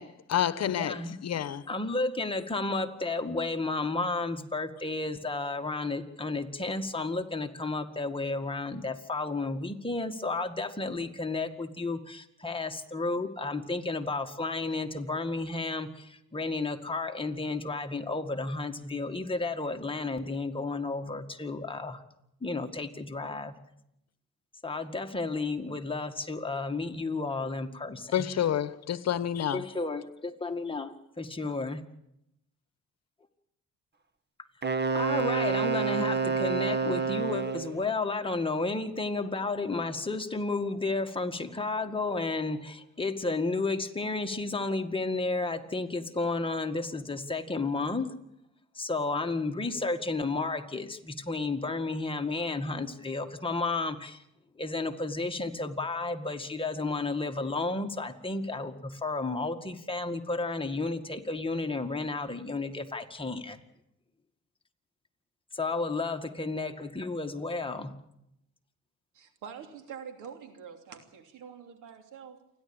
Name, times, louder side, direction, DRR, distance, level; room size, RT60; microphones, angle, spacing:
voice 1, 0.0-1.0 1.2-1.6 28.1-29.6, left 10 dB, 60° left, 1.1 m, -29 dB
voice 2, 0.6-1.2 1.7-22.0 22.4-23.5 24.6-28.3 29.5-31.8 34.9-48.1 48.7-54.2 54.6-63.6 65.5-67.9, left 3 dB, 15° left, 1.9 m, -32 dB
Wind instrument woodwind instrument, 34.6-37.8, right 4 dB, 35° right, 1.4 m, -28 dB
voice 3, 69.1-72.4, right 7 dB, 85° right, 3.1 m, -45 dB
28.5 x 11.0 x 8.8 m
cardioid pair, 90°, 30 cm